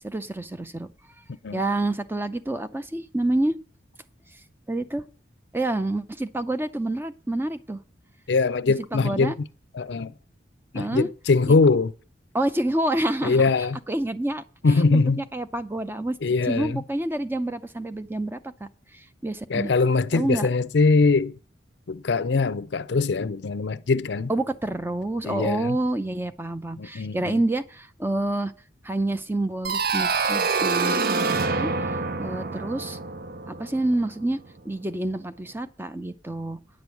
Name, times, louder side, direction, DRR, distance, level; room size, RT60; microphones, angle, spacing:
voice 1, 0.0-0.9 1.5-3.6 4.7-5.0 5.5-7.8 8.9-9.3 10.7-11.1 11.5-11.6 12.3-13.4 13.9-16.2 16.4-18.4 18.9-19.7 20.1-20.5 24.3-28.5 28.8-31.7 32.2-33.0 33.5-34.4 34.6-36.6, right 1 dB, 10° right, 0.6 m, -28 dB
voice 2, 8.3-9.3 9.7-10.1 10.7-11.9 13.2-13.8 14.6-15.2 16.2-16.8 19.5-21.3 21.9-24.3 25.3-25.8 26.8-27.4, left 4 dB, 65° left, 0.5 m, -22 dB
sound 1, 29.6-34.3, right 4 dB, 55° right, 0.6 m, -26 dB
9.7 x 6.2 x 8.3 m
head